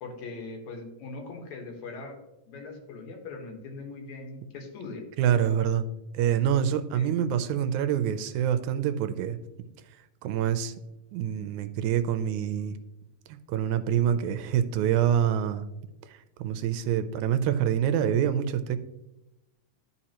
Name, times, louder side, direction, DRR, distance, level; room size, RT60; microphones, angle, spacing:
voice 1, 0.0-2.2 2.5-5.0 6.9-7.1, left 3 dB, 75° left, 2 dB, 2.6 m, -40 dB
voice 2, 5.2-5.9 6.1-9.4 10.2-10.7 11.1-12.8 13.3-15.7 16.1-18.8, right 9 dB, 85° right, 10 dB, 2.0 m, -26 dB
12.0 x 4.7 x 2.9 m, 0.95 s
omnidirectional pair, 3.3 m